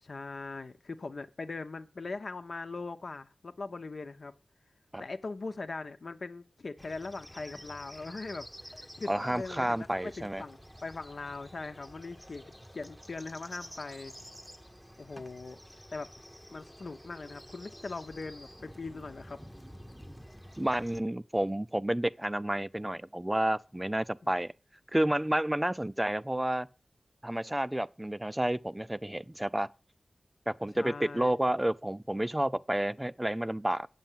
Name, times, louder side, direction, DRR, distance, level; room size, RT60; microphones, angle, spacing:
voice 1, 0.0-4.3 5.0-14.1 15.0-15.6 15.9-16.1 16.5-19.4 30.7-31.4, left 3 dB, 70° left, 1.0 m, -41 dB
sound 1, 6.8-21.0, equal, 5° left, 0.8 m, -50 dB
voice 2, 9.1-10.4 20.6-24.5 24.9-26.7 27.2-29.7 30.5-33.9, right 1 dB, 15° right, 0.5 m, -30 dB
8.1 x 7.4 x 7.5 m
cardioid pair, 45°, 0 cm